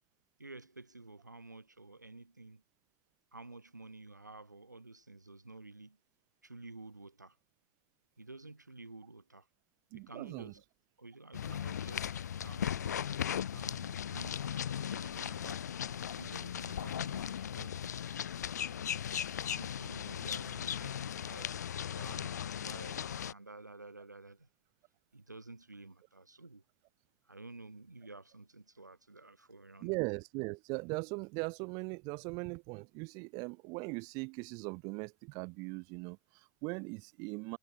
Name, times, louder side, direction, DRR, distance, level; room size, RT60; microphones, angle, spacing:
voice 1, 0.4-2.6 3.3-6.0 6.4-7.4 8.2-9.5 9.9-10.6 11.0-12.8 13.5-18.0 18.5-19.0 19.4-21.6 21.9-24.5 25.1-26.6 27.3-29.9, right 2 dB, 85° right, 1.6 m, -52 dB
voice 2, 9.9-10.5 29.8-37.6, right 31 dB, 40° right, 0.7 m, -39 dB
sound 1, 11.3-23.3, left 9 dB, 70° left, 0.4 m, -37 dB
figure-of-eight pair, 90°, 9 cm